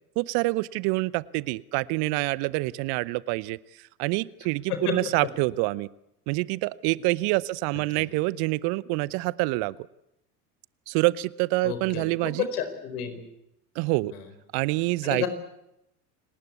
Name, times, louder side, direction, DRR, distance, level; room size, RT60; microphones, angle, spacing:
voice 1, 0.2-3.6 4.0-5.9 6.3-9.7 10.9-12.5 13.8-14.1 14.5-15.2, right 21 dB, 50° right, 21 dB, 0.9 m, -26 dB
voice 2, 11.6-13.2 14.1-14.2 15.0-15.3, left 9 dB, 70° left, 10 dB, 4.8 m, -31 dB
29.0 x 19.0 x 8.3 m, 0.83 s
hypercardioid pair, 80°, 47 cm